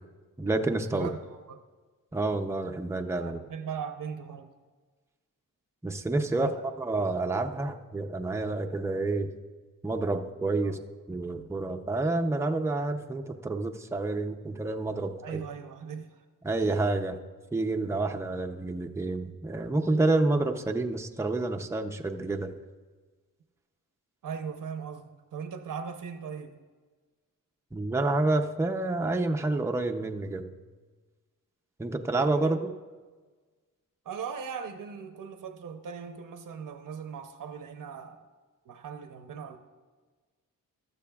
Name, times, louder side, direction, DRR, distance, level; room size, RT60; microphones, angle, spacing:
voice 1, 0.4-1.1 2.1-3.4 5.8-9.3 9.8-10.8 11.1-15.4 16.4-17.2 17.5-22.5 27.7-30.5 31.8-32.7, right 2 dB, 10° right, 4 dB, 0.6 m, -29 dB
voice 2, 0.9-1.6 3.2-4.5 6.3-6.7 10.6-10.8 15.2-16.2 24.2-26.5 32.2-32.7 34.0-38.3 38.7-39.6, right 6 dB, 70° right, 7 dB, 0.8 m, -39 dB
15.5 x 12.5 x 2.3 m, 1.4 s
wide cardioid pair, 115°, 34 cm